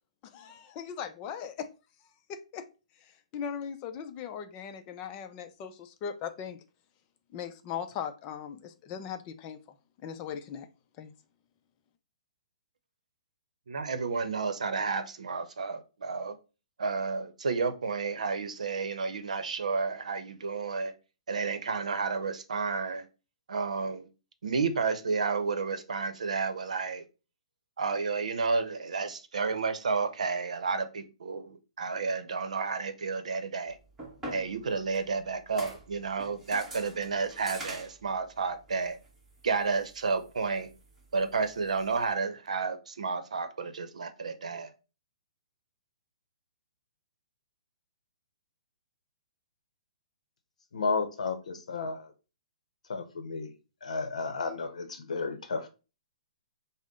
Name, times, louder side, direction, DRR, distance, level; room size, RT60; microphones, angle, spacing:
voice 1, 0.2-1.7 2.3-2.6 3.3-6.6 7.3-9.6 10.0-10.7 11.0-11.1, left 7 dB, 30° left, 0.5 m, -39 dB
voice 2, 13.7-16.4 16.8-20.9 21.3-23.1 23.5-24.1 24.4-27.1 27.8-33.8 34.3-39.0 39.4-40.7 41.1-44.7, right 4 dB, 80° right, 0.7 m, -31 dB
sound 1, 33.7-42.1, right 1 dB, 10° right, 1.3 m, -47 dB
voice 3, 50.7-51.3 51.7-52.1 52.9-53.5 53.8-55.7, left 4 dB, 75° left, 0.7 m, -32 dB
5.3 x 2.1 x 3.6 m
hypercardioid pair, 140°, 4 cm